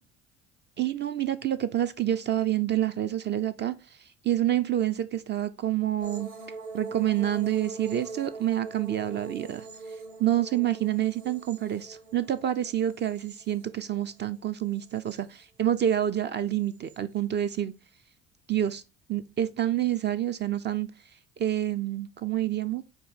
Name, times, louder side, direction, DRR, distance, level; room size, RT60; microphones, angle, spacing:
voice 1, 0.8-3.8 4.2-6.3 6.7-9.7 10.2-17.7 18.5-18.8 19.1-20.9 21.4-22.8, right 11 dB, 30° right, 0.4 m, -28 dB
sound 1, 6.0-14.2 14.6-15.4 16.7-17.0, right 4 dB, 80° right, 2.4 m, -43 dB
4.8 x 2.6 x 3.9 m
hypercardioid pair, 60°, 35 cm